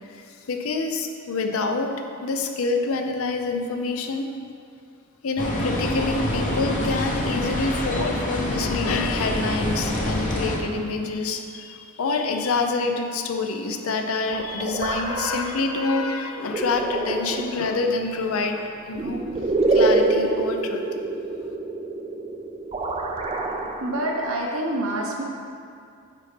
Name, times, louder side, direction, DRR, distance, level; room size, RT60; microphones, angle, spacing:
voice 1, 0.1-1.9 2.2-4.3 5.2-19.2 19.7-20.8, left 3 dB, 80° left, 4 dB, 0.6 m, -27 dB
sound 1, 5.4-10.6, left 1 dB, 35° left, 0.8 m, -26 dB
sound 2, 14.3-24.4, right 2 dB, 25° right, 0.4 m, -26 dB
voice 2, 23.5-25.2, right 1 dB, 75° right, -1 dB, 1.0 m, -27 dB
9.2 x 4.2 x 3.3 m, 2.4 s
head